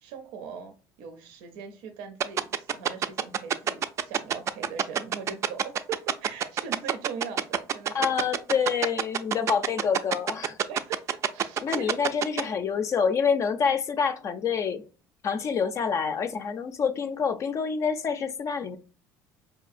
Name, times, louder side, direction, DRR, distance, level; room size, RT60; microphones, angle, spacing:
voice 1, 0.0-8.2 10.7-12.0, right 6 dB, 85° right, 0.6 m, -41 dB
sound 1, 2.2-12.4, right 8 dB, 40° right, 0.3 m, -25 dB
voice 2, 7.9-10.6 11.6-14.8 15.2-18.8, left 6 dB, 40° left, 0.4 m, -27 dB
4.6 x 2.7 x 2.5 m
cardioid pair, 115°, 8 cm